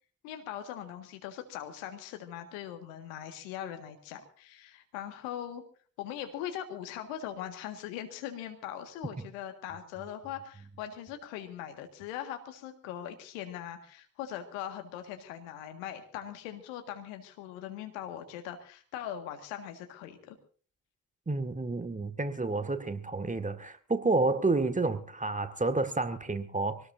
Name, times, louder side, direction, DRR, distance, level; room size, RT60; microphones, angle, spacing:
voice 1, 0.2-5.6 6.0-20.4, left 10 dB, 75° left, 1.8 m, -41 dB
voice 2, 21.3-26.8, right 3 dB, 20° right, 1.9 m, -30 dB
24.5 x 18.5 x 2.7 m
figure-of-eight pair, 40°, 40 cm